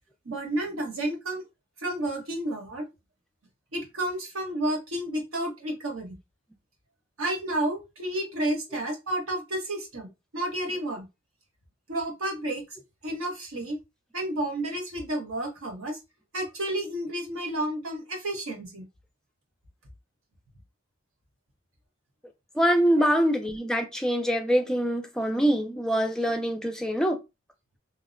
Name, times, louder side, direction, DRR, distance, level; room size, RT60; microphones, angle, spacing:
voice 1, 0.2-1.4 1.8-2.8 3.7-6.1 7.2-10.1 10.3-11.0 11.9-12.6 13.0-13.8 14.1-16.0 16.3-18.8 23.0-23.1, right 1 dB, 85° right, 1.0 m, -31 dB
voice 2, 22.6-27.2, equal, 5° left, 0.3 m, -24 dB
2.7 x 2.0 x 2.4 m
head